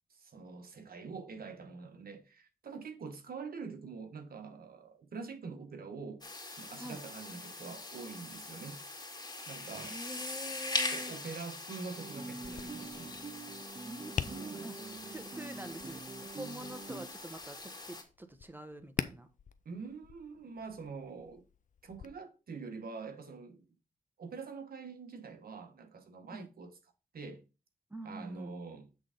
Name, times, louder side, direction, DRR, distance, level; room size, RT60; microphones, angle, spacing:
voice 1, 0.1-6.2 6.5-8.8 9.5-10.0 10.9-13.1 14.3-14.7 19.6-21.4 21.8-23.6 24.2-26.7 27.1-27.4 28.0-28.9, right 4 dB, 75° right, 1.4 m, -45 dB
sound 1, 6.2-18.0, left 2 dB, 25° left, 2.2 m, -42 dB
voice 2, 9.7-11.1 13.9-14.8 15.0-19.3 26.3-26.5 27.9-28.5, right 1 dB, 15° right, 1.3 m, -46 dB
Guitar, 11.9-17.1, right 4 dB, 30° right, 0.7 m, -46 dB
Tap, 12.4-22.1, left 7 dB, 55° left, 0.6 m, -45 dB
8.0 x 3.7 x 5.1 m
cardioid pair, 60°, 16 cm